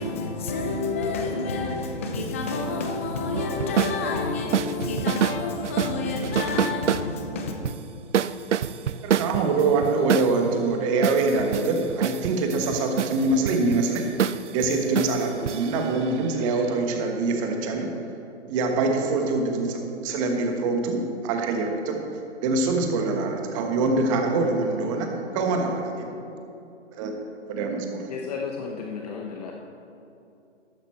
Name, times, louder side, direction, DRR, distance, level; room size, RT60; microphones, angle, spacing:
voice 1, 0.0-7.6, left 3 dB, 15° left, 0.4 m, -28 dB
sound 1, 3.3-4.0 4.5-5.4 5.6-7.1 7.6-7.8 8.1-10.3 11.0-16.7, right 9 dB, 85° right, 0.5 m, -27 dB
voice 2, 9.0-14.0 14.5-18.2 18.5-22.0 22.4-26.2 27.0-27.1 27.5-28.1, right 3 dB, 30° right, 1.3 m, -24 dB
voice 3, 28.1-29.5, left 5 dB, 35° left, 0.9 m, -33 dB
13.0 x 8.9 x 4.4 m
hypercardioid pair, 140°, 35 cm